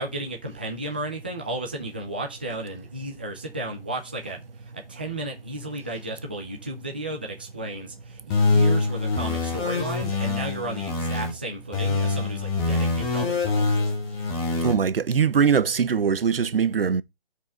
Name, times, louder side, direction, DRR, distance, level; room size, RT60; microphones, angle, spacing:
voice 1, 0.0-13.9, right 1 dB, 10° right, 0.5 m, -34 dB
sound 1, 8.3-11.3 11.7-14.7, left 3 dB, 10° left, 1.1 m, -24 dB
voice 2, 14.6-17.0, right 6 dB, 70° right, 0.7 m, -21 dB
5.6 x 4.8 x 6.3 m
figure-of-eight pair, 160°, 30 cm